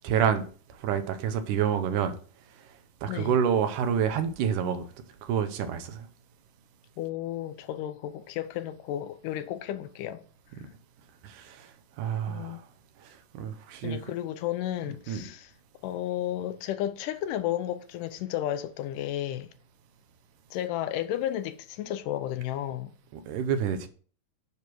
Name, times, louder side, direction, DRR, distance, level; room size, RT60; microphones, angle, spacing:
voice 1, 0.0-0.4 0.7-2.2 3.0-4.9 5.2-6.1 11.2-12.6 13.0-14.0 15.1-15.3 23.1-23.9, right 8 dB, 80° right, 2.3 m, -28 dB
voice 2, 3.1-3.4 7.0-10.2 12.3-12.6 13.8-15.5 15.8-19.5 20.5-23.0, left 12 dB, 85° left, 2.2 m, -33 dB
9.6 x 3.4 x 6.0 m
omnidirectional pair, 3.7 m